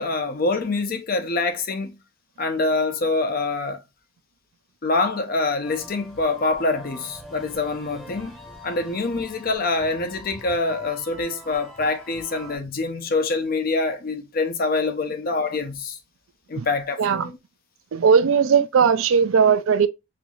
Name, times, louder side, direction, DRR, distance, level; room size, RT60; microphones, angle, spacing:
voice 1, 0.0-2.0 2.4-3.8 4.8-8.4 8.6-16.0 16.5-17.3, left 3 dB, 45° left, 0.5 m, -25 dB
sound 1, 5.6-12.6, left 1 dB, ahead, 0.8 m, -44 dB
voice 2, 17.0-17.3 17.9-19.9, right 6 dB, 70° right, 0.4 m, -18 dB
4.4 x 2.6 x 2.3 m
head